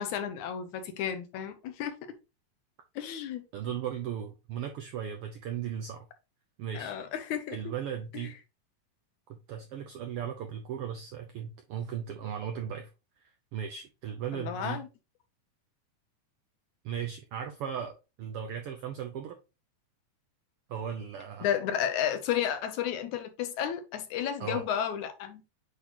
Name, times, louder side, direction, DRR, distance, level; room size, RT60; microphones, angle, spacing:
voice 1, 0.0-2.0 3.0-3.5 6.7-7.7 8.1-8.3 14.3-14.9 21.4-25.4, left 9 dB, 75° left, 2.2 m, -32 dB
voice 2, 3.5-6.1 6.6-6.9 7.5-8.3 9.3-12.9 13.5-14.8 16.8-19.4 20.7-21.5 24.4-24.6, right 8 dB, 80° right, 1.3 m, -37 dB
8.2 x 4.1 x 2.9 m
omnidirectional pair, 3.5 m